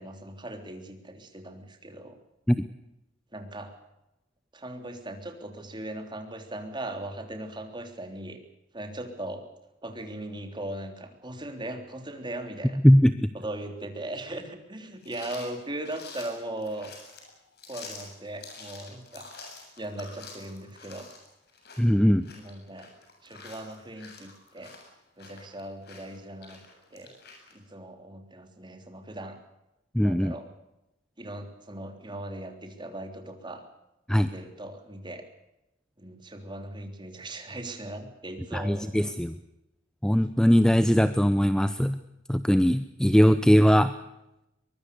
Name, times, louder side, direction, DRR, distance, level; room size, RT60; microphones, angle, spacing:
voice 1, 0.0-2.2 3.3-3.7 4.5-8.4 8.7-9.4 9.8-12.8 13.3-16.9 17.7-19.3 19.8-21.1 22.3-22.9 23.2-24.7 25.2-26.6 26.9-27.1 27.5-29.4 30.0-30.5 31.2-33.6 34.2-35.2 36.0-39.1, right 1 dB, 25° right, 5 dB, 3.4 m, -39 dB
voice 2, 12.8-13.3 21.8-22.3 29.9-30.3 34.1-34.3 38.5-39.4 40.0-42.0 42.3-43.9, equal, 5° left, 11 dB, 0.7 m, -20 dB
sound 1, 15.0-27.5, left 4 dB, 55° left, 7.6 m, -48 dB
23.0 x 22.0 x 6.8 m, 0.90 s
head